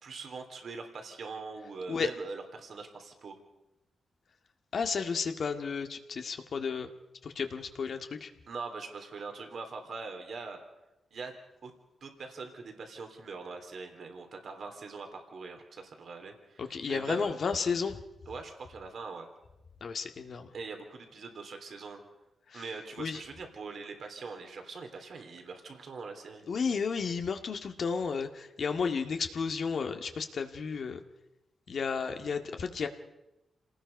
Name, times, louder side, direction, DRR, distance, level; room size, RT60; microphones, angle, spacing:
voice 1, 0.0-3.4 8.5-10.6 11.1-11.3 11.6-11.7 12.0-17.3 18.3-19.3 20.5-22.0 22.5-26.4, right 4 dB, 65° right, 5 dB, 3.4 m, -42 dB
voice 2, 4.7-6.9 7.2-8.3 16.6-18.0 19.8-20.5 22.5-22.7 23.0-23.2 26.5-31.0 31.7-32.9, left 5 dB, 65° left, 6 dB, 1.9 m, -32 dB
27.5 x 19.0 x 5.4 m, 0.93 s
supercardioid pair, 50°, 0 cm